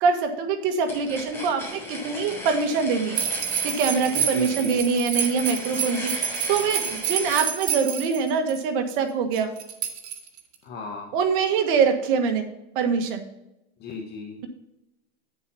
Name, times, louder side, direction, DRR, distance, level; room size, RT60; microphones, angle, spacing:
voice 1, 0.0-3.2 3.6-9.5 11.1-12.5 12.8-13.2, right 5 dB, 55° right, 5 dB, 1.7 m, -24 dB
sound 1, 0.9-7.5, left 1 dB, 5° left, 3.7 m, -37 dB
sound 2, 3.1-8.6 9.3-10.5, right 8 dB, 75° right, 1.7 m, -28 dB
voice 2, 4.1-4.8 10.6-11.1 13.8-14.4, left 3 dB, 30° left, 1 dB, 1.3 m, -36 dB
9.0 x 7.2 x 4.3 m, 0.91 s
supercardioid pair, 140°, 32 cm